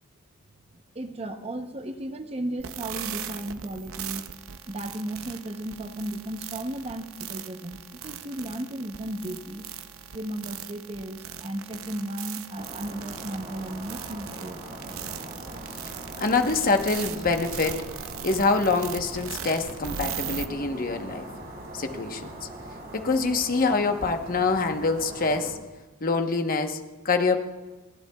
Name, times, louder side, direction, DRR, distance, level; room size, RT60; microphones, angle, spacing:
voice 1, 0.9-4.2 4.7-9.6 10.1-14.6, right 1 dB, 30° right, 7 dB, 0.7 m, -35 dB
sound 1, 2.6-20.5, right 8 dB, 70° right, 0.7 m, -39 dB
sound 2, 12.5-25.5, right 1 dB, 50° right, 3.8 m, -41 dB
voice 2, 16.2-17.8 18.2-21.3 21.7-22.5 22.9-25.6 26.0-27.4, left 3 dB, 40° left, 6 dB, 1.0 m, -25 dB
29.5 x 11.0 x 2.3 m, 1.2 s
head